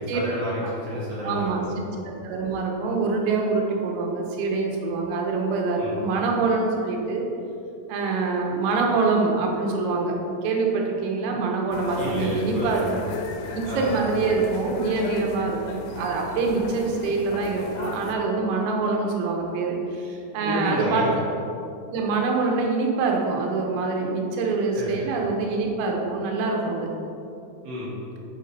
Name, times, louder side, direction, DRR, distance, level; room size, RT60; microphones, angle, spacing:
voice 1, 0.0-1.7 5.8-5.9 12.0-12.8 13.7-13.9 20.4-21.1 24.7-25.1 27.6-27.9, equal, 60° right, -8 dB, 2.6 m, -30 dB
voice 2, 1.2-7.3 7.9-12.9 13.5-21.1 21.9-26.9, right 3 dB, 90° right, 0 dB, 3.6 m, -25 dB
sound 1, 11.7-18.2, left 4 dB, 85° left, 3.2 m, -36 dB
8.0 x 5.1 x 4.1 m, 2.7 s
omnidirectional pair, 5.8 m